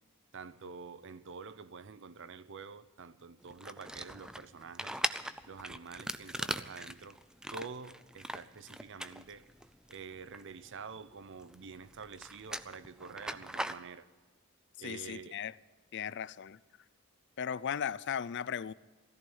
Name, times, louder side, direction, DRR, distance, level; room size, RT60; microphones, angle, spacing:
voice 1, 0.3-5.0 5.5-7.2 7.5-9.4 9.9-14.0 14.8-15.4, right 5 dB, 60° right, 0.7 m, -47 dB
sound 1, 3.4-13.8, right 1 dB, 5° right, 0.5 m, -40 dB
voice 2, 14.8-15.5 15.9-16.6 17.4-18.7, left 8 dB, 55° left, 0.4 m, -36 dB
16.5 x 14.5 x 5.5 m
head